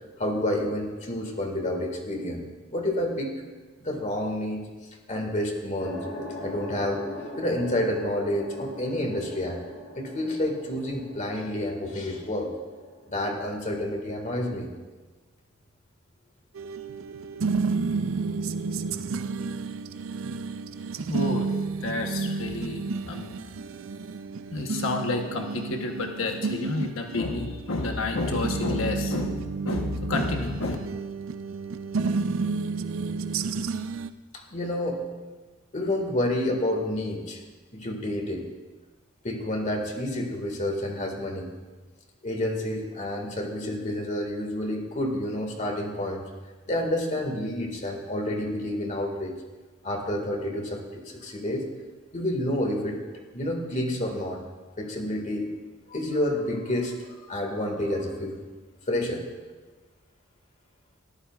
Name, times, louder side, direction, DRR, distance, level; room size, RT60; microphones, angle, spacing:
voice 1, 0.2-3.3 3.8-4.7 5.1-6.0 6.4-7.0 7.4-9.6 10.0-12.5 13.1-14.7 34.5-35.0 35.7-37.4 37.7-38.5 39.2-41.5 42.2-46.3 46.7-49.4 49.8-51.7 52.1-53.0 53.3-54.4 54.8-55.6 55.9-58.4 58.9-59.2, left 1 dB, 40° left, 2 dB, 1.9 m, -29 dB
sound 1, 5.8-14.5, left 1 dB, 65° left, 3.7 m, -41 dB
sound 2, 16.6-34.1, right 4 dB, 85° right, 0.5 m, -31 dB
voice 2, 21.1-21.5 21.8-23.3 24.5-30.8, left 2 dB, 85° left, 3 dB, 1.1 m, -30 dB
22.0 x 14.0 x 2.4 m, 1.3 s
head